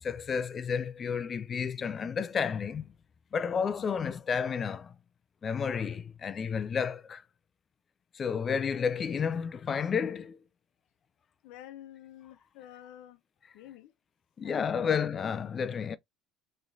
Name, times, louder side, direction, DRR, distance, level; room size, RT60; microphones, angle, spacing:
voice 1, 0.0-2.9 3.3-4.9 5.4-7.2 8.1-10.4 14.4-16.0, left 6 dB, 25° left, 0.3 m, -31 dB
voice 2, 11.4-13.2 13.5-13.9 14.4-15.1, left 12 dB, 75° left, 0.7 m, -49 dB
3.8 x 3.1 x 2.6 m
cardioid pair, 150°, 0 cm